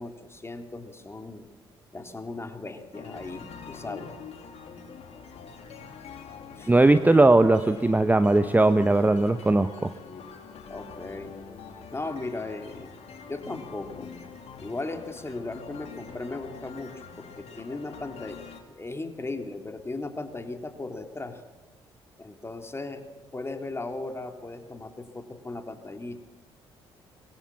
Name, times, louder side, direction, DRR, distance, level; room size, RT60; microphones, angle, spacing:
voice 1, 0.0-1.5 1.9-4.2 6.6-7.4 10.7-11.3 11.9-12.9 13.3-14.1 14.6-21.4 22.2-26.2, left 2 dB, 20° left, 6 dB, 3.4 m, -37 dB
sound 1, 2.9-18.6, left 6 dB, 50° left, 3.1 m, -45 dB
voice 2, 6.7-9.9, right 2 dB, 10° right, 11 dB, 1.1 m, -19 dB
24.5 x 23.0 x 7.2 m, 1.2 s
figure-of-eight pair, 45°, 13 cm